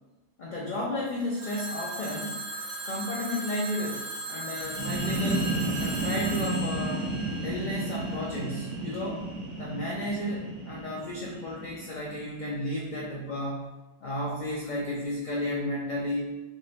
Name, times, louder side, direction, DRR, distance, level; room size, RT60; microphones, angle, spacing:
voice 1, 0.4-2.4 2.8-7.1 7.4-9.3 9.6-13.7 14.0-16.3, left 1 dB, 65° left, -3 dB, 0.4 m, -33 dB
Telephone, 1.4-8.2, right 2 dB, 70° right, 0.9 m, -38 dB
sound 1, 4.6-12.2, right 2 dB, 90° right, 1.2 m, -32 dB
3.0 x 2.8 x 2.7 m, 1.1 s
omnidirectional pair, 1.3 m